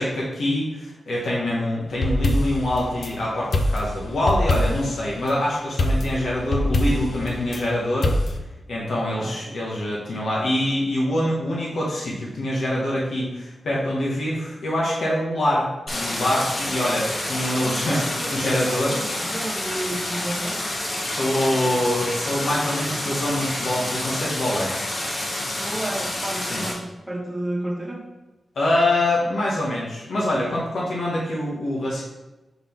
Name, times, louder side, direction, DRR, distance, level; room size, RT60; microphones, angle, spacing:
voice 1, 0.0-8.2 8.7-18.0 18.3-18.9 21.0-24.7 26.5-26.6 28.5-32.0, left 1 dB, 70° left, -4 dB, 1.1 m, -25 dB
sound 1, 1.9-3.1 3.5-5.0 5.8-7.6 8.0-8.4, left 1 dB, 50° left, 0.5 m, -23 dB
Stream, 15.9-26.7, left 1 dB, 35° left, 1.0 m, -28 dB
voice 2, 17.6-18.5 18.9-20.6 25.6-28.0, right 1 dB, 10° right, -2 dB, 1.1 m, -31 dB
5.8 x 3.8 x 4.4 m, 1.1 s
wide cardioid pair, 170°, 0 cm